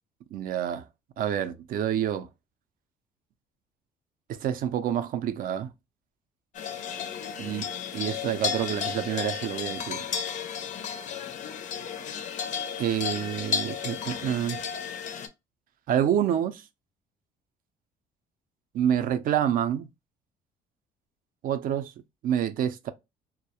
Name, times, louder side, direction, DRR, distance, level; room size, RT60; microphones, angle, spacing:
voice 1, 0.3-0.9 1.2-2.3 4.3-5.7 7.4-7.6 7.9-10.1 12.8-14.6 15.9-16.6 18.7-19.9 21.4-21.9 22.2-22.9, right 10 dB, 55° right, 0.4 m, -27 dB
sound 1, 6.5-15.3, left 7 dB, 45° left, 0.4 m, -33 dB
2.3 x 2.0 x 2.8 m
cardioid pair, 110°, 17 cm